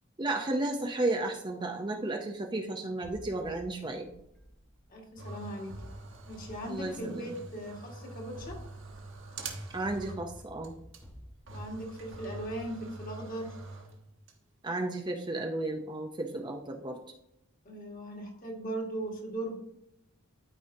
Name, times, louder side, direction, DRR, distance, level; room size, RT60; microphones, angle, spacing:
voice 1, 0.2-4.1 6.7-7.4 9.7-10.7 14.6-17.0, right 2 dB, 20° right, 3 dB, 0.5 m, -33 dB
sound 1, 3.0-5.2 5.7-7.5 8.2-13.3, equal, 10° left, 1.0 m, -53 dB
voice 2, 4.9-5.7 6.3-8.6 11.5-13.5 17.6-19.6, right 1 dB, 40° left, 0 dB, 1.6 m, -38 dB
sound 2, 5.2-10.4 10.6-10.7 10.9-11.0 11.5-14.3, right 3 dB, 55° right, 1.3 m, -45 dB
12.5 x 4.9 x 2.7 m, 0.80 s
head